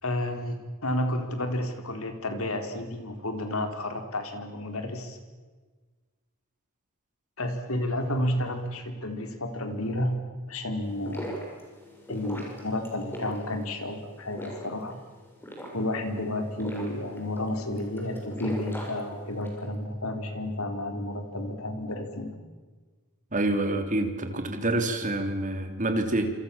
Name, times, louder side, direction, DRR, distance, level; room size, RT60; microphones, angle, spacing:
voice 1, 0.0-5.2 7.4-10.1 10.5-11.3 12.1-15.0 15.7-22.4, left 1 dB, 70° left, 6 dB, 4.2 m, -31 dB
sound 1, 10.8-19.6, equal, 10° left, 6.7 m, -41 dB
voice 2, 23.3-26.3, right 2 dB, 35° right, 6 dB, 3.4 m, -27 dB
28.0 x 27.5 x 7.3 m, 1.4 s
head